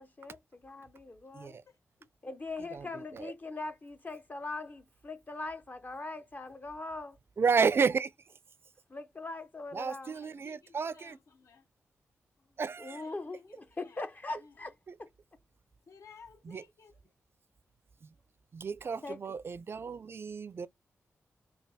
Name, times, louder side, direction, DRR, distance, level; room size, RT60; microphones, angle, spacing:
voice 1, 0.0-1.6 2.2-7.2 8.9-10.1 12.8-14.7 15.0-15.1 19.0-19.2, left 3 dB, 35° left, 0.6 m, -41 dB
voice 2, 1.7-2.1 10.0-11.7 12.9-14.1 14.4-14.6 15.9-17.1, left 5 dB, 75° left, 1.0 m, -57 dB
voice 3, 2.7-3.3 7.4-8.1 9.7-11.2 12.6-13.0 14.9-15.0 16.5-16.6 18.0-18.1 18.5-20.7, right 5 dB, 50° right, 0.4 m, -32 dB
3.3 x 2.3 x 4.0 m
cardioid pair, 60°, 5 cm